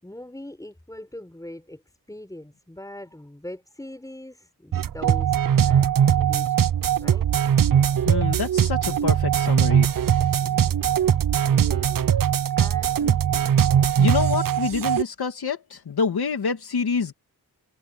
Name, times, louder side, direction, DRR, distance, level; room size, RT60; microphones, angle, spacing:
voice 1, 0.0-6.7 7.0-7.3 10.4-11.0 11.5-11.9 12.6-13.1, left 1 dB, 10° left, 6.5 m, -41 dB
sound 1, 4.7-15.0, right 9 dB, 65° right, 0.7 m, -20 dB
voice 2, 8.0-9.9 13.0-13.1 14.0-17.1, left 5 dB, 90° left, 2.5 m, -27 dB
wide cardioid pair, 140°, 37 cm